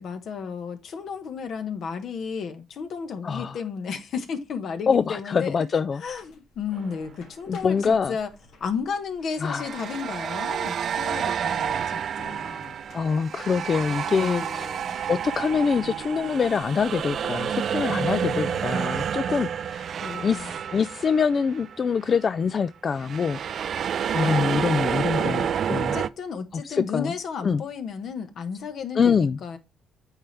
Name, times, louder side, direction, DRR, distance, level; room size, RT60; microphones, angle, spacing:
voice 1, 0.0-5.5 6.0-8.3 8.6-12.7 14.2-15.0 17.8-18.7 20.0-20.5 25.2-29.6, left 6 dB, 65° left, 1.3 m, -33 dB
voice 2, 3.2-3.6 4.9-6.0 7.5-8.2 9.4-9.7 12.9-14.7 15.1-19.9 20.2-23.9 24.1-26.0 26.5-27.1 27.4-27.6 29.0-29.4, left 6 dB, 45° left, 0.3 m, -25 dB
sound 1, 6.0-20.5, left 4 dB, 85° left, 2.6 m, -55 dB
sound 2, 6.7-7.0 9.4-21.8 22.0-22.3 23.0-26.1, right 8 dB, 60° right, 0.4 m, -29 dB
8.7 x 4.5 x 3.3 m
cardioid pair, 90°, 0 cm